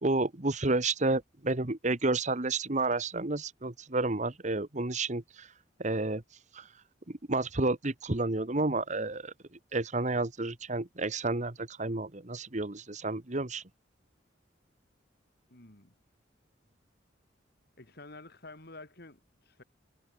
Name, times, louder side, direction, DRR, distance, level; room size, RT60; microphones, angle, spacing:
voice 1, 0.0-5.5 5.8-6.2 6.5-6.6 7.1-9.3 9.7-13.6, right 2 dB, 40° right, 1.5 m, -30 dB
voice 2, 15.5-15.9 17.8-19.6, left 2 dB, 55° left, 3.8 m, -50 dB
head